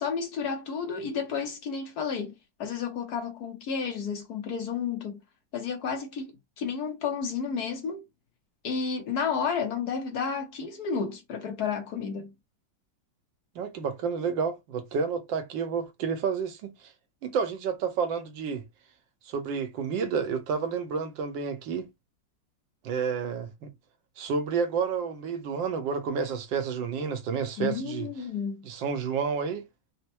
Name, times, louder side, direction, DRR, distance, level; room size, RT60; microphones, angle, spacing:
voice 1, 0.0-2.3 2.6-5.2 5.5-8.0 8.6-12.3 27.6-28.6, left 6 dB, 65° left, 1.2 m, -31 dB
voice 2, 13.5-16.9 17.2-18.6 19.2-21.9 22.8-23.7 24.2-28.1 28.6-29.7, right 6 dB, 80° right, 1.5 m, -30 dB
4.2 x 2.1 x 2.8 m
omnidirectional pair, 2.0 m